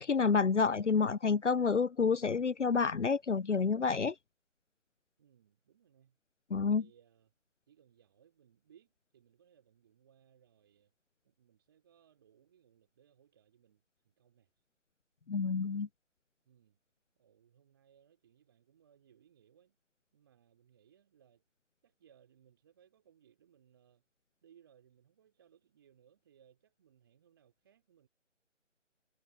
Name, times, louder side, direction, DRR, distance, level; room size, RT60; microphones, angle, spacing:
voice 1, 0.0-4.1 6.5-6.9 15.3-15.9, left 5 dB, 70° left, 0.6 m, -29 dB
voice 2, 5.2-6.2 6.8-7.3 7.7-10.9 11.2-14.5 15.5-15.8 16.5-16.8 17.2-19.8 20.1-21.4 21.8-24.0 24.4-28.1, right 9 dB, 20° right, 3.5 m, -66 dB
figure-of-eight pair, 155°, 38 cm